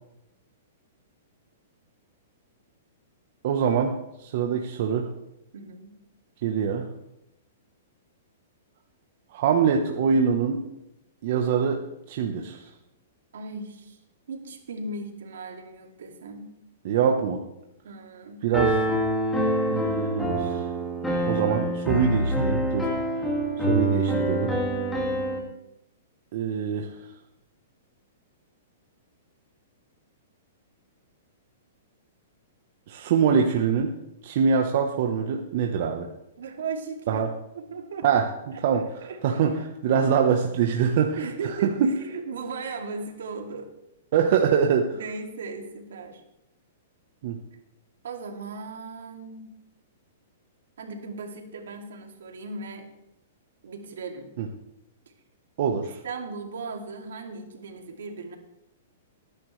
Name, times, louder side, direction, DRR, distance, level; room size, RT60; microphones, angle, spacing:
voice 1, 3.4-5.1 6.4-6.9 9.3-10.6 11.2-11.8 12.1-12.7 16.8-17.4 18.4-18.8 19.7-20.7 21.2-22.9 23.6-24.5 26.3-26.9 32.9-33.9 34.2-36.1 37.1-37.3 38.0-38.8 39.2-41.2 41.8-41.9 44.1-44.9 47.2-47.4 54.4-54.5 55.6-56.0, right 6 dB, 55° right, 3 dB, 1.1 m, -24 dB
voice 2, 5.5-5.9 13.3-14.0 14.3-16.5 17.8-18.5 36.4-37.2 37.5-38.1 38.5-38.6 39.0-39.2 41.1-43.7 44.9-46.2 48.0-49.5 50.8-52.9 53.6-54.3 56.0-58.4, right 4 dB, 80° right, 2 dB, 2.5 m, -37 dB
Piano, 18.5-25.4, right 1 dB, 10° left, 2.3 m, -26 dB
19.5 x 10.5 x 3.3 m, 0.86 s
hypercardioid pair, 145°, 0 cm